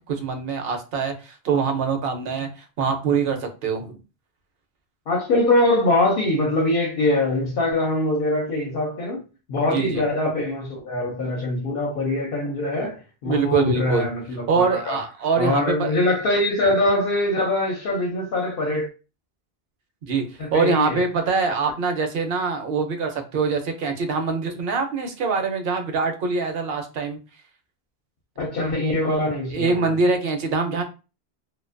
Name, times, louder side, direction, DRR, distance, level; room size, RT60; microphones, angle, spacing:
voice 1, 0.1-2.5 2.8-4.0 9.7-10.0 13.2-14.1 14.5-15.9 20.0-20.2 20.5-27.2 29.5-30.8, right 4 dB, 70° right, 0.8 m, -24 dB
voice 2, 5.1-15.0 15.4-18.9 20.4-21.0 28.4-30.0, left 2 dB, 65° left, 0.7 m, -23 dB
2.4 x 2.2 x 2.4 m
omnidirectional pair, 1.1 m